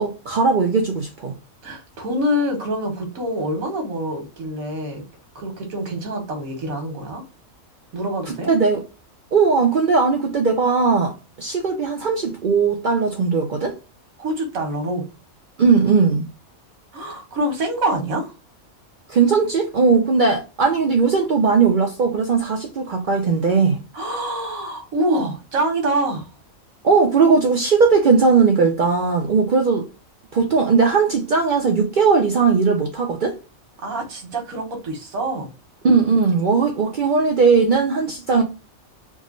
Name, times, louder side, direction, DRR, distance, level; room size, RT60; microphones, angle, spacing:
voice 1, 0.0-1.3 8.5-8.8 9.3-13.8 15.6-16.3 19.1-23.8 26.8-29.9 30.3-33.4 35.8-38.4, right 5 dB, 65° right, 0.5 m, -18 dB
voice 2, 1.6-5.1 5.3-7.2 7.9-8.5 14.2-15.1 16.9-18.3 23.9-26.3 33.8-35.5, right 1 dB, 85° right, 1.6 m, -25 dB
3.7 x 2.0 x 3.6 m
omnidirectional pair, 1.4 m